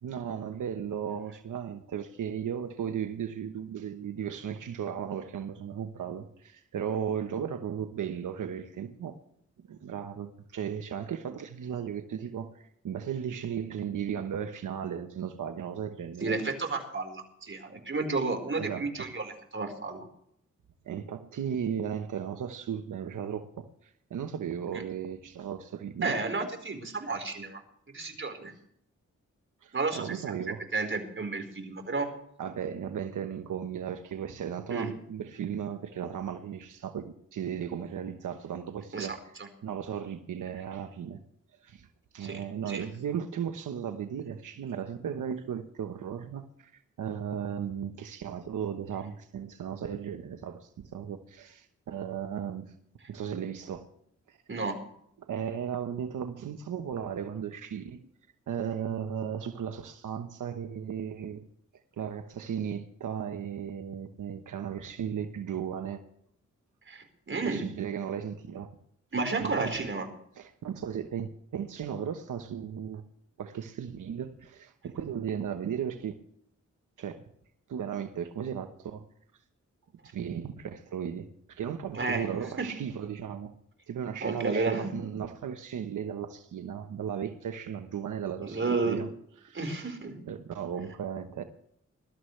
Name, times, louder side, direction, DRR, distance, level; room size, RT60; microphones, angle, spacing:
voice 1, 0.0-9.2 9.7-16.3 18.6-19.0 20.8-26.1 29.6-30.6 32.4-39.3 39.6-41.2 41.6-41.9 42.1-52.7 53.1-53.9 54.3-54.4 55.3-58.0 58.5-61.5 62.0-66.0 67.5-68.7 69.4-69.9 70.3-73.0 73.4-76.2 77.0-77.2 77.7-79.0 80.0-83.5 83.9-89.1 89.4-89.8 90.3-91.4, right 8 dB, 85° right, 1.1 m, -36 dB
voice 2, 16.2-20.0 26.0-27.6 27.9-28.5 29.7-30.3 30.7-32.1 34.7-34.9 38.9-39.5 42.2-42.8 54.5-54.7 66.9-67.6 69.1-70.1 81.9-82.3 82.6-82.7 84.2-84.9 88.4-89.0 89.5-90.1, right 3 dB, 40° right, 4.6 m, -32 dB
21.5 x 13.0 x 3.3 m
cardioid pair, 70°, 30 cm